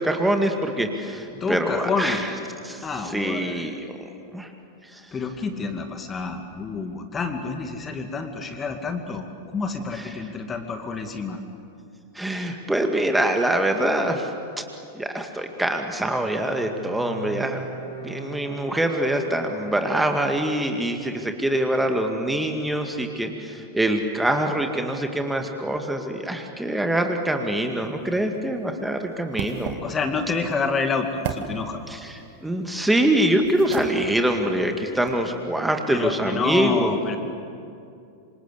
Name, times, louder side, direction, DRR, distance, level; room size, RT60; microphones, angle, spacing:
voice 1, 0.0-2.3 2.6-4.0 4.3-4.5 4.8-5.0 9.9-10.2 12.1-14.3 14.9-17.7 18.0-29.8 31.9-37.0, right 1 dB, 5° right, 4 dB, 2.1 m, -24 dB
voice 2, 1.3-2.2 2.8-3.7 5.1-9.2 9.5-11.4 29.8-31.8 35.9-37.2, left 4 dB, 20° left, 6 dB, 2.2 m, -28 dB
Bowed string instrument, 16.1-20.5, right 1 dB, 85° left, 5.3 m, -40 dB
sound 1, 27.6-35.3, right 7 dB, 50° right, 2.1 m, -39 dB
27.0 x 26.5 x 8.3 m, 2.6 s
figure-of-eight pair, 90°, 0 cm